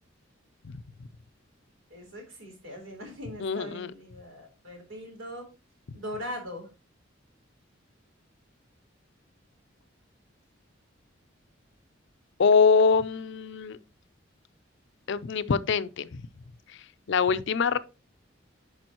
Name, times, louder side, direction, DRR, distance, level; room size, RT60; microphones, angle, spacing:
voice 1, 1.9-5.5 5.9-6.7, equal, 80° right, 3.9 m, -40 dB
voice 2, 3.4-3.9 12.4-13.8 15.1-16.2 17.1-17.8, left 5 dB, 65° left, 0.5 m, -24 dB
10.5 x 5.2 x 3.0 m
head